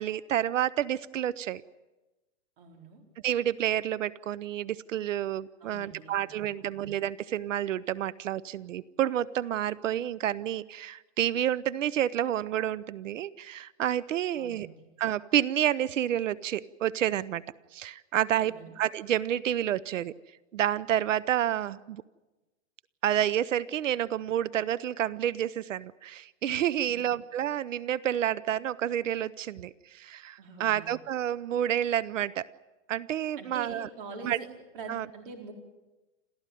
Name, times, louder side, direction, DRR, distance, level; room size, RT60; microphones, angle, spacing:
voice 1, 0.0-1.6 3.2-14.7 15.0-17.4 17.7-20.1 20.5-22.0 23.0-32.5 32.9-33.9 34.2-34.4 34.9-35.1, right 11 dB, 80° right, 20 dB, 0.8 m, -29 dB
voice 2, 2.6-3.0 5.6-6.8 14.3-14.9 18.3-18.7 26.9-27.1 30.4-31.0 33.4-34.5 34.7-35.5, right 4 dB, 45° right, 3 dB, 4.3 m, -45 dB
28.5 x 14.0 x 9.2 m, 1.1 s
hypercardioid pair, 175°, 38 cm